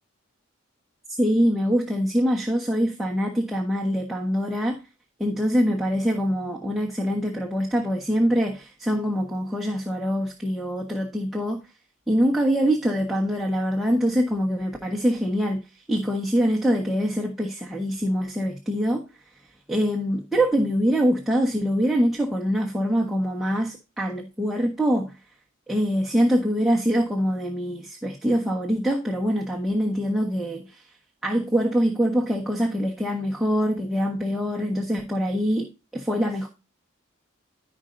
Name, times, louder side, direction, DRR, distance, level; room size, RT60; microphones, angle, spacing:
voice 1, 1.1-4.8 5.2-11.6 12.1-15.6 15.9-19.0 19.7-25.1 25.7-30.8 31.2-36.5, equal, ahead, 1.3 m, -24 dB
14.5 x 5.3 x 2.7 m
head